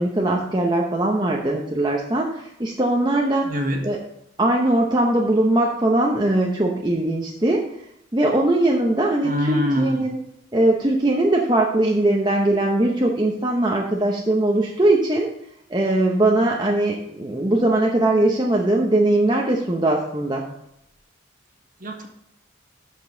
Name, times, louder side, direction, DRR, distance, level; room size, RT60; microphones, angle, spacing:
voice 1, 0.0-3.6 3.8-4.0 4.4-7.7 8.1-10.2 10.5-15.3 15.7-20.5, right 1 dB, 20° right, -1 dB, 0.9 m, -20 dB
voice 2, 3.4-3.8 9.2-10.0 21.8-22.1, equal, 45° right, 3 dB, 1.7 m, -24 dB
13.0 x 5.4 x 3.9 m, 0.80 s
head